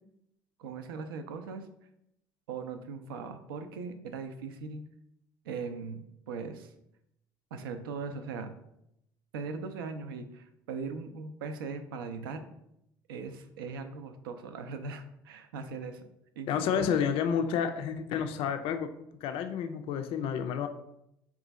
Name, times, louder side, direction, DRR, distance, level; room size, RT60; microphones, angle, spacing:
voice 1, 0.6-1.7 2.5-4.8 5.4-6.7 7.5-8.5 9.3-12.5 13.1-16.1 16.4-16.9, right 5 dB, 75° right, 8 dB, 0.4 m, -39 dB
voice 2, 16.5-18.9 19.2-20.7, left 7 dB, 50° left, 7 dB, 0.3 m, -30 dB
3.7 x 2.4 x 4.0 m, 0.80 s
hypercardioid pair, 60°, 12 cm